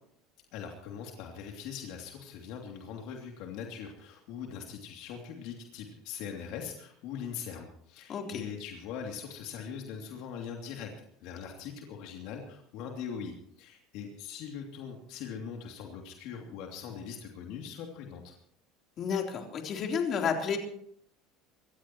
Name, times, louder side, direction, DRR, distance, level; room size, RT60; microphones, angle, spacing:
voice 1, 0.5-10.9 11.2-18.3, left 7 dB, 65° left, 1 dB, 2.9 m, -41 dB
voice 2, 8.1-8.4 19.0-20.6, left 6 dB, 45° left, 2 dB, 3.7 m, -31 dB
26.5 x 14.0 x 3.1 m, 0.66 s
supercardioid pair, 100°, 0 cm